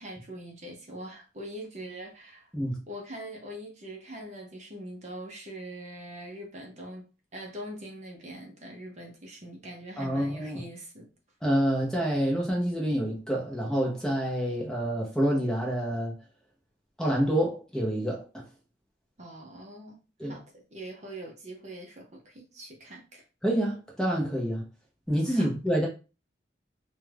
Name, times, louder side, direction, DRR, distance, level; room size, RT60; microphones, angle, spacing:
voice 1, 0.0-2.5 2.9-7.1 7.3-11.1 19.2-23.2 25.3-25.5, right 1 dB, 40° right, 0.6 m, -43 dB
voice 2, 10.0-10.6 11.4-16.1 17.0-18.4 20.2-20.4 23.4-24.6 25.1-25.9, equal, 5° left, 0.6 m, -27 dB
2.4 x 2.2 x 3.2 m
head